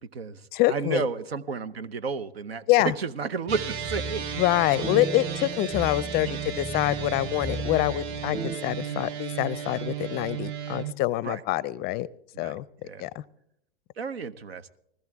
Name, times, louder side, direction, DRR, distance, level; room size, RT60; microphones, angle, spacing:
voice 1, 0.0-4.4 6.3-6.4 11.2-11.4 12.3-12.6 12.8-13.1 14.0-14.8, right 5 dB, 90° right, 15 dB, 0.9 m, -32 dB
voice 2, 0.5-1.1 2.7-2.9 4.4-12.1 12.4-13.2, left 16 dB, 35° left, 21 dB, 0.5 m, -26 dB
sound 1, 3.5-8.6, right 2 dB, 10° right, 0.6 m, -36 dB
Dist Chr D oct up, 3.5-10.9, right 9 dB, 50° right, 1.1 m, -35 dB
20.5 x 15.5 x 3.5 m, 0.75 s
hypercardioid pair, 110°, 30 cm